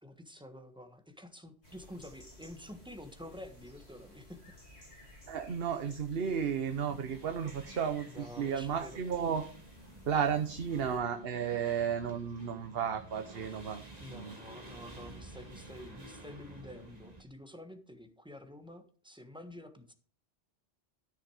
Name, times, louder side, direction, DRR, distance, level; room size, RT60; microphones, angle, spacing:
voice 1, 0.0-4.4 8.1-9.0 14.0-19.9, left 1 dB, 5° right, 6 dB, 1.3 m, -49 dB
sound 1, 1.6-11.0, left 1 dB, 85° left, 6.2 m, -55 dB
voice 2, 5.3-9.5 10.1-14.4, right 7 dB, 65° right, 7 dB, 1.1 m, -33 dB
sound 2, 6.7-17.2, right 1 dB, 35° right, 2.3 m, -51 dB
13.5 x 6.3 x 4.9 m, 0.43 s
omnidirectional pair, 1.1 m